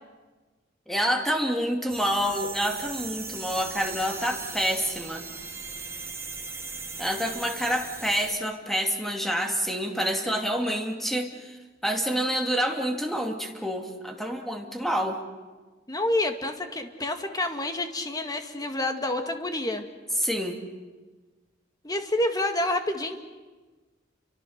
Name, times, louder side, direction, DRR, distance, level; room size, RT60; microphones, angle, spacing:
voice 1, 0.9-5.3 7.0-11.5 11.8-15.2 20.2-20.6, equal, ahead, 3 dB, 2.7 m, -27 dB
sound 1, 1.9-8.3, right 4 dB, 15° right, 2.6 m, -38 dB
voice 2, 15.9-19.9 21.8-23.2, left 1 dB, 20° left, 6 dB, 1.9 m, -28 dB
30.0 x 24.5 x 6.6 m, 1.3 s
head